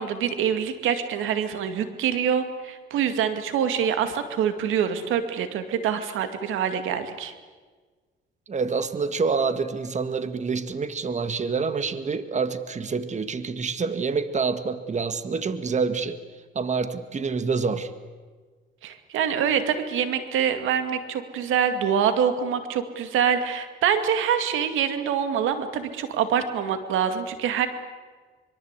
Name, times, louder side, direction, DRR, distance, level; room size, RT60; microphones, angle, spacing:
voice 1, 0.0-7.3 18.8-27.7, right 8 dB, 90° right, 9 dB, 2.3 m, -25 dB
voice 2, 8.5-16.2 16.6-17.9, right 5 dB, 35° right, 11 dB, 1.7 m, -27 dB
24.5 x 23.5 x 8.3 m, 1.4 s
cardioid pair, 90°, 20 cm